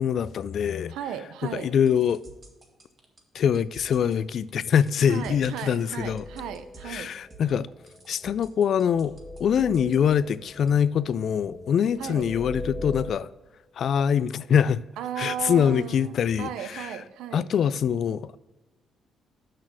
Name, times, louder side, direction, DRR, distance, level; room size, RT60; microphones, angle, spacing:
voice 1, 0.0-0.9 1.5-2.2 3.3-6.2 6.9-7.7 8.1-9.1 9.4-13.3 13.8-14.8 15.2-16.9 17.3-18.4, left 8 dB, 60° left, 0.3 m, -24 dB
voice 2, 0.9-1.7 5.1-7.1 12.0-12.3 15.0-17.5, right 9 dB, 90° right, 0.6 m, -35 dB
sound 1, 1.5-10.7, right 4 dB, 30° right, 1.7 m, -49 dB
sound 2, 6.0-13.1, left 1 dB, 15° left, 1.3 m, -41 dB
6.5 x 6.1 x 6.0 m
cardioid pair, 90°, 0 cm